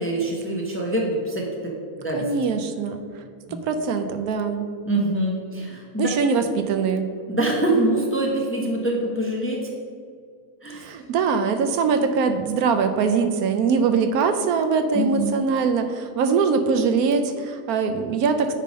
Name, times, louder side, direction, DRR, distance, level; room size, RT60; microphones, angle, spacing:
voice 1, 0.0-1.5 2.0-2.3 3.5-3.6 4.9-6.1 7.3-9.6 10.6-10.9 14.9-15.3, right 1 dB, 10° left, -1 dB, 0.7 m, -24 dB
voice 2, 2.1-3.0 3.6-4.7 6.0-7.1 10.8-18.5, right 5 dB, 80° right, 8 dB, 1.1 m, -22 dB
9.6 x 3.7 x 5.2 m, 2.1 s
omnidirectional pair, 1.6 m